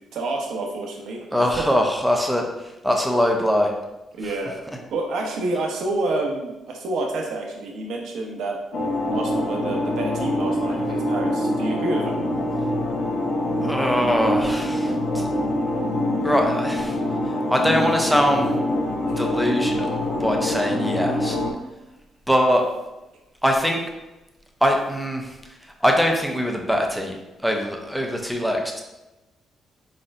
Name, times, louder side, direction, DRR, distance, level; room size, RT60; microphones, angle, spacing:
voice 1, 0.1-1.8 4.2-4.6 4.9-8.6 9.0-12.2 19.1-19.3, right 2 dB, 75° right, 0 dB, 0.8 m, -28 dB
voice 2, 1.3-3.7 4.2-4.3 13.6-15.3 16.2-17.0 17.5-18.6 19.2-21.4 22.3-22.7 23.4-23.8 24.6-27.1 27.4-28.8, equal, ahead, 2 dB, 0.5 m, -22 dB
sound 1, 8.7-21.5, left 1 dB, 60° left, 0.8 m, -25 dB
4.4 x 4.2 x 2.5 m, 1.0 s
cardioid pair, 160°, 0 cm